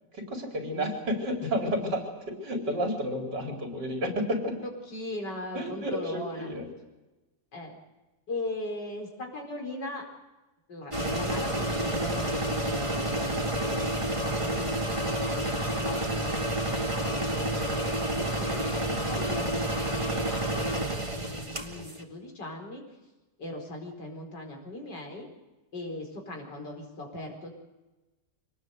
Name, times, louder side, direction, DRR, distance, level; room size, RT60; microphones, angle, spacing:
voice 1, 0.1-4.6 5.5-6.7, equal, 85° right, 3 dB, 5.0 m, -31 dB
voice 2, 4.6-6.5 7.5-7.8 8.3-10.1 10.7-22.8 23.4-25.3 25.7-27.5, left 1 dB, 85° left, 2 dB, 5.2 m, -39 dB
sound 1, 10.9-22.0, right 1 dB, 20° right, 2.0 m, -29 dB
25.0 x 19.0 x 8.1 m, 1.1 s
omnidirectional pair, 1.8 m